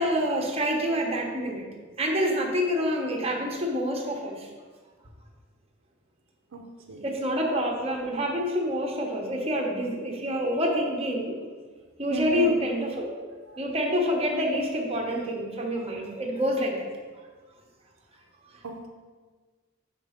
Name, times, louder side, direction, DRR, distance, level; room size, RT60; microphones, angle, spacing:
voice 1, 0.0-1.7 2.0-4.5 7.0-11.4 12.0-13.2 13.6-16.9 17.2-17.3, equal, 30° right, 0 dB, 0.8 m, -27 dB
voice 2, 6.5-7.1 12.1-12.6 13.5-13.6 18.6-18.9, right 2 dB, 70° right, 2 dB, 0.6 m, -35 dB
5.3 x 3.9 x 5.0 m, 1.4 s
head